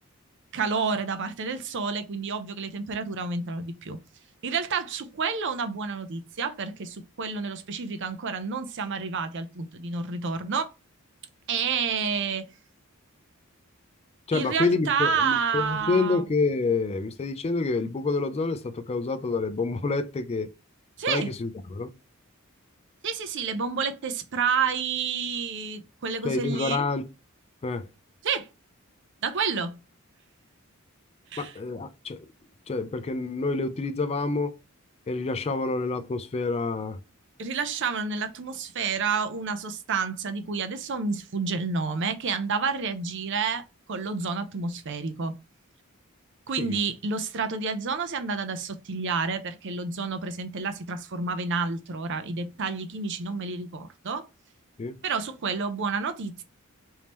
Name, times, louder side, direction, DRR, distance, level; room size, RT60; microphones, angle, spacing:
voice 1, 0.5-4.0 4.4-10.7 11.5-12.5 14.3-16.2 21.0-21.3 23.0-26.9 28.2-28.5 29.2-29.8 31.3-31.5 37.4-45.4 46.5-54.3 55.0-56.4, right 5 dB, 60° right, 0.6 m, -29 dB
voice 2, 14.3-20.5 21.1-21.9 26.2-27.1 27.6-27.9 31.4-32.3 32.7-34.6 35.1-37.0 46.6-46.8 54.8-55.0, left 3 dB, 30° left, 0.4 m, -28 dB
3.5 x 2.7 x 2.9 m
head